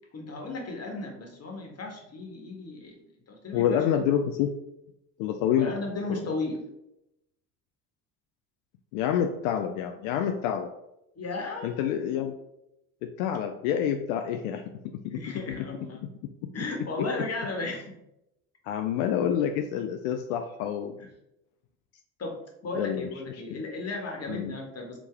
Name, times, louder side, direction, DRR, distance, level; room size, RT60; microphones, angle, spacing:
voice 1, 0.1-4.0 5.5-6.6 11.1-11.9 15.1-16.0 16.5-18.0 21.0-21.1 22.2-22.4 22.6-25.0, left 3 dB, 35° left, 1 dB, 1.4 m, -35 dB
voice 2, 3.5-4.5 5.2-5.7 8.9-10.7 11.6-12.3 13.0-15.2 18.7-21.0 22.8-23.1 23.5-23.6 24.3-24.5, left 9 dB, 80° left, 5 dB, 0.5 m, -27 dB
4.9 x 2.7 x 3.4 m, 0.85 s
hypercardioid pair, 65°, 41 cm